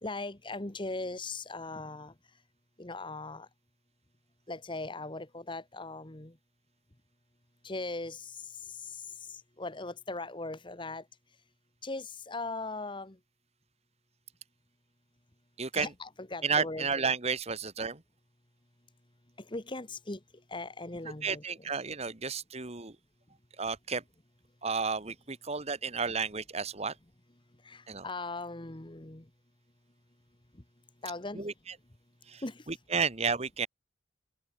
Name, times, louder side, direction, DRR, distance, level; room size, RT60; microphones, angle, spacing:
voice 1, 0.0-2.1 2.8-3.5 4.5-6.3 7.6-8.4 8.7-9.0 9.3-11.0 11.8-13.2 15.7-16.9 19.4-20.2 20.5-21.7 27.6-29.3 31.0-31.4 32.4-32.6, left 2 dB, 25° left, 1.3 m, -39 dB
voice 2, 15.6-15.9 16.4-18.0 21.2-22.9 23.6-24.0 24.6-26.9 27.9-28.0 31.3-31.5 32.3-32.4 32.9-33.7, right 5 dB, 35° right, 1.4 m, -32 dB
head